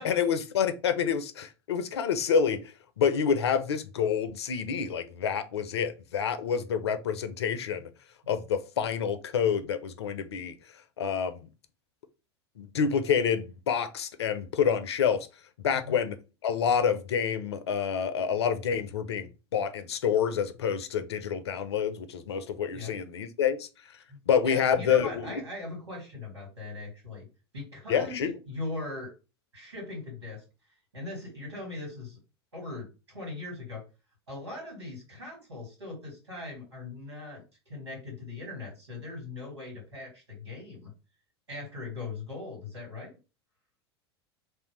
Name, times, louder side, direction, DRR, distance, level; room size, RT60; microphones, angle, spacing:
voice 1, 0.0-7.9 8.3-10.5 11.0-11.5 12.6-15.3 15.6-16.2 16.4-23.7 24.3-25.4 27.9-28.3, left 7 dB, 75° left, 0.6 m, -28 dB
voice 2, 24.4-27.3 27.5-29.1 29.5-30.4 30.9-32.2 32.5-33.8 34.3-40.9 41.5-43.2, left 2 dB, 90° right, 2.5 m, -40 dB
3.3 x 2.7 x 4.5 m
figure-of-eight pair, 80°, 14 cm